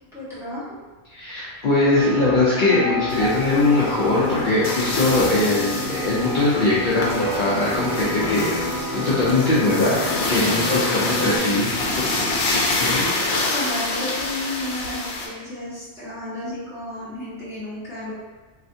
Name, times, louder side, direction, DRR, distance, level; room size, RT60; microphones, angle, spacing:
voice 1, 0.1-0.8 11.1-12.1 13.5-18.1, left 1 dB, 5° right, -12 dB, 1.1 m, -32 dB
voice 2, 1.1-8.6 8.9-11.7 12.0-12.3 12.8-13.0, left 2 dB, 55° left, -8 dB, 0.6 m, -21 dB
sound 1, 1.8-11.4, left 1 dB, 30° right, 1.1 m, -29 dB
sound 2, 3.1-15.3, left 2 dB, 85° left, 0.9 m, -27 dB
3.2 x 2.4 x 2.6 m, 1.3 s
omnidirectional pair, 1.2 m